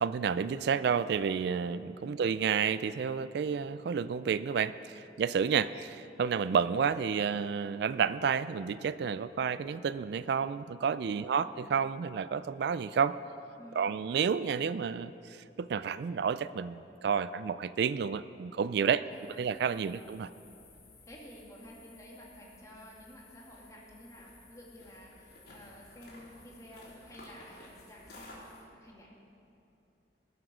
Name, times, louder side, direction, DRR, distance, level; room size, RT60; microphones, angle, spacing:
voice 1, 0.0-13.2 13.7-19.0 19.4-20.3, right 6 dB, 65° right, 15 dB, 0.3 m, -30 dB
voice 2, 11.0-11.4 13.6-13.9 18.8-19.4 19.7-20.0 21.0-29.1, equal, 20° left, -3 dB, 2.3 m, -52 dB
sound 1, 19.1-28.6, left 2 dB, 60° left, 3.8 m, -55 dB
20.0 x 7.9 x 6.1 m, 2.7 s
head